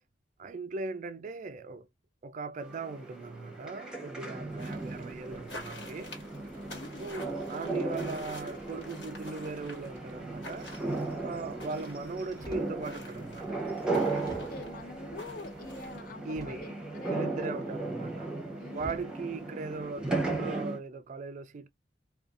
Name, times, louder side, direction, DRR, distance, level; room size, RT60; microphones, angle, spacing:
voice 1, 0.4-1.9 2.2-6.2 7.0-10.7 11.2-13.6 16.2-16.6 17.1-18.3 18.7-21.7, right 3 dB, 45° right, 0.3 m, -39 dB
sound 1, 2.6-20.8, right 2 dB, 5° right, 0.8 m, -36 dB
sound 2, 4.6-16.1, left 1 dB, 70° left, 1.4 m, -49 dB
voice 2, 6.7-7.1 14.2-17.5 18.6-19.0, left 3 dB, 50° left, 0.5 m, -46 dB
sound 3, 12.3-12.8 13.5-13.6 14.2-14.8 16.2-16.9 18.1-18.2 18.7-19.1 19.8-20.1, equal, 20° left, 0.9 m, -47 dB
2.5 x 2.3 x 2.4 m
head